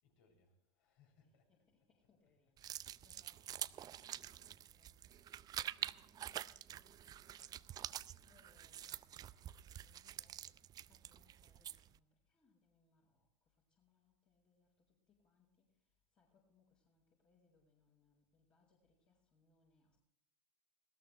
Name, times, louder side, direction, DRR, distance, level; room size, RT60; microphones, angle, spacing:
voice 1, 0.0-2.8, left 4 dB, 55° left, 2 dB, 7.0 m, -75 dB
voice 2, 1.2-20.0, left 4 dB, 35° left, -2 dB, 4.9 m, -76 dB
sound 1, 2.6-12.0, right 11 dB, 25° right, 0.5 m, -47 dB
19.0 x 17.5 x 3.3 m, 0.77 s
hypercardioid pair, 95°, 15 cm